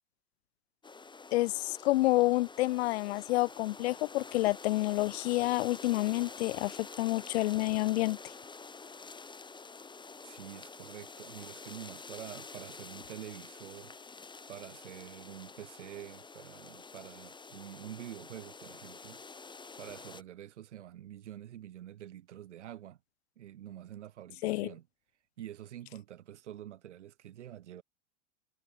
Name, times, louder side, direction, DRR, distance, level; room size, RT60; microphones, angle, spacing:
sound 1, 0.8-20.2, left 4 dB, 15° left, 6.6 m, -48 dB
voice 1, 1.3-8.3 24.4-24.7, left 19 dB, 60° left, 0.7 m, -29 dB
voice 2, 10.2-13.9 14.5-19.2 19.8-23.0 23.4-24.9 25.4-27.8, right 11 dB, 75° right, 6.0 m, -47 dB
hypercardioid pair, 105°, 35 cm